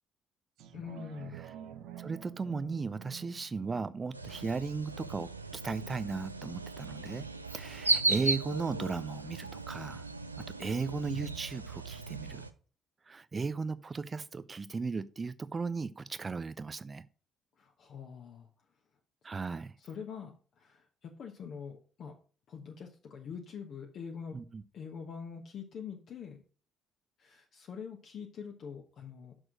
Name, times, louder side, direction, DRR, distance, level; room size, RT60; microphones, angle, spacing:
sound 1, 0.6-5.6 6.1-6.2, right 11 dB, 60° right, 0.9 m, -49 dB
voice 1, 0.7-1.3 17.6-18.5 19.8-22.1 22.5-24.4 24.7-26.4 27.2-29.3, left 6 dB, 50° left, 1.1 m, -44 dB
voice 2, 2.0-10.1 10.6-12.4 13.1-17.0 19.2-19.7 24.3-24.6, right 4 dB, 30° right, 0.5 m, -36 dB
sound 2, 4.1-12.5, right 3 dB, 85° right, 0.4 m, -36 dB
6.3 x 6.1 x 6.2 m
figure-of-eight pair, 50°, 0 cm